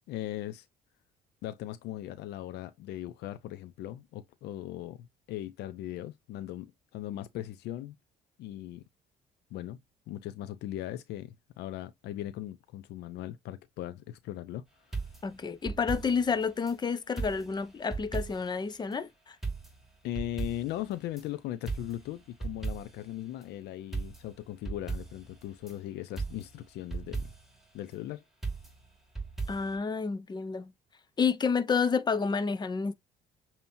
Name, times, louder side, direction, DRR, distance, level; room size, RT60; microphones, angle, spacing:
voice 1, 0.1-0.7 1.4-7.9 8.4-8.8 9.5-9.8 10.1-14.6 14.9-15.0 20.0-27.3 27.7-28.2, left 13 dB, 80° left, 0.5 m, -39 dB
sound 1, 14.9-16.8 17.2-18.6 18.9-19.0 19.4-21.3 21.7-23.1 23.4-23.5 23.9-25.8 26.2-27.6 28.4-29.8, right 4 dB, ahead, 2.2 m, -38 dB
voice 2, 15.2-19.4 29.5-30.7 31.2-32.9, left 5 dB, 25° left, 0.7 m, -30 dB
7.0 x 2.9 x 2.6 m
cardioid pair, 110°, 17 cm